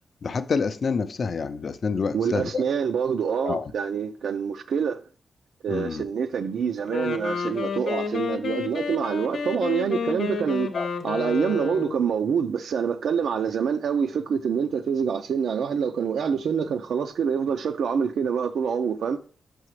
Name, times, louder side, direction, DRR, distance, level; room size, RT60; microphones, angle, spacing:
voice 1, 0.2-2.6 3.4-3.7 5.7-6.0 10.7-10.9, left 5 dB, 45° left, 0.4 m, -27 dB
voice 2, 2.1-5.0 5.6-10.7 11.0-19.2, right 7 dB, 85° right, 0.4 m, -26 dB
Wind instrument woodwind instrument, 6.8-12.1, left 6 dB, 80° left, 0.8 m, -30 dB
6.2 x 5.6 x 3.1 m
wide cardioid pair, 150°, 0 cm